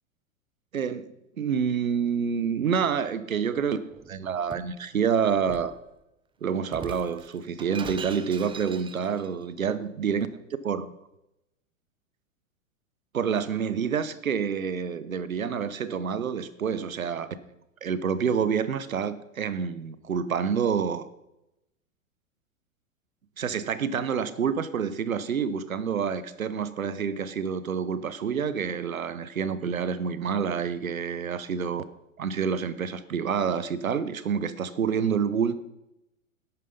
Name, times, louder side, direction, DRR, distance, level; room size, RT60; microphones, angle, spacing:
voice 1, 0.7-1.1 1.4-3.8 4.1-5.8 6.4-10.3 10.6-10.9 13.1-17.3 17.8-21.1 23.4-31.8 32.2-35.6, right 7 dB, 85° right, 14 dB, 1.0 m, -28 dB
Shatter, 3.9-4.8 5.5-5.8 6.7-9.3, right 6 dB, 10° right, 0.7 m, -41 dB
11.5 x 9.4 x 5.2 m, 0.88 s
hypercardioid pair, 105°, 40 cm